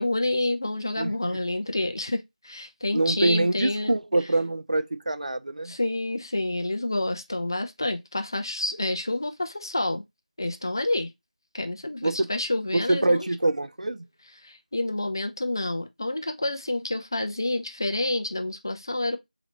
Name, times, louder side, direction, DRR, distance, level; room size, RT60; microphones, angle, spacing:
voice 1, 0.0-3.9 5.6-10.0 10.4-11.1 11.5-13.3 14.4-19.2, left 2 dB, 30° left, 0.5 m, -28 dB
voice 2, 1.0-1.3 2.9-5.7 12.0-12.3 12.7-14.0, right 2 dB, 60° right, 0.5 m, -25 dB
3.9 x 3.0 x 3.1 m
figure-of-eight pair, 175°, 4 cm